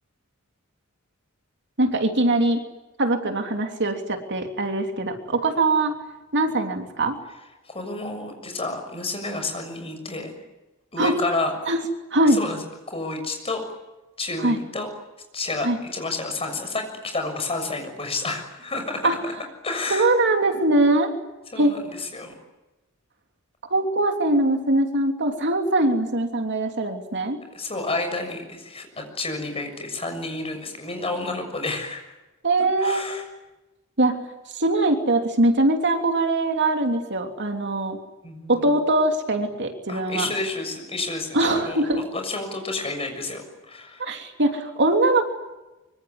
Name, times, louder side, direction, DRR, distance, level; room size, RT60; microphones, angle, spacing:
voice 1, 1.8-2.6 3.0-5.9 6.3-7.2 11.0-11.2 11.7-11.8 12.1-12.4 14.4-14.6 15.6-15.8 19.0-19.2 19.9-21.1 21.6-21.8 23.7-27.4 32.4-33.0 34.0-34.2 34.5-38.0 38.5-40.3 41.3-42.0 44.0-45.2, right 2 dB, 55° right, 5 dB, 3.1 m, -22 dB
voice 2, 7.7-10.4 10.9-11.5 12.3-12.6 12.9-13.6 14.2-14.9 15.3-19.3 19.6-20.1 21.5-22.4 27.5-32.1 32.8-33.2 38.2-38.7 39.9-41.8 42.1-44.1, left 2 dB, 25° left, 5 dB, 6.7 m, -30 dB
25.0 x 24.5 x 9.6 m, 1.1 s
head